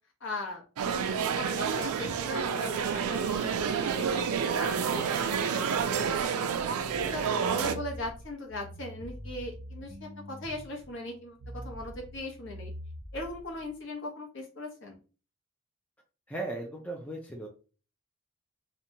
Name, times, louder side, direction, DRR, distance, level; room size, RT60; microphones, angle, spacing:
voice 1, 0.2-6.5 7.0-12.7 13.1-15.0, left 1 dB, 55° left, 1 dB, 0.8 m, -39 dB
sound 1, 0.8-7.8, right 6 dB, 85° right, 0.4 m, -29 dB
sound 2, 6.8-13.7, left 1 dB, 40° right, 0.6 m, -45 dB
voice 2, 16.3-17.5, right 2 dB, 5° left, 0 dB, 0.3 m, -37 dB
2.7 x 2.2 x 2.7 m, 0.36 s
head